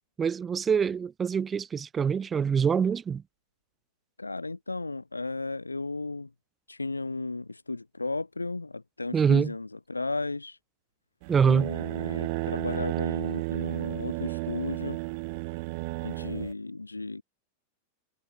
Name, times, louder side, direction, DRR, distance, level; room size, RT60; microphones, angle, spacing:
voice 1, 0.2-3.2 9.1-9.5 11.3-11.7, right 6 dB, 20° right, 0.6 m, -25 dB
voice 2, 4.2-6.3 6.7-10.6 11.4-15.0 16.0-17.2, left 3 dB, 80° left, 1.8 m, -34 dB
sound 1, 11.2-16.5, right 28 dB, 45° right, 1.6 m, -33 dB
figure-of-eight pair, 90°, 0 cm